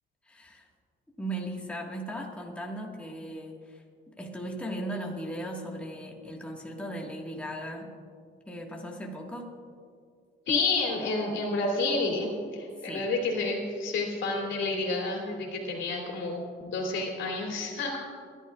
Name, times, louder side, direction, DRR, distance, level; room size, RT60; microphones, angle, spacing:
voice 1, 0.2-0.7 1.2-7.9 8.5-9.5 12.8-13.1, right 1 dB, 5° left, -1 dB, 1.6 m, -37 dB
voice 2, 10.5-18.1, left 3 dB, 70° left, 0 dB, 2.9 m, -30 dB
29.0 x 11.0 x 2.4 m, 2.2 s
cardioid pair, 90°, 20 cm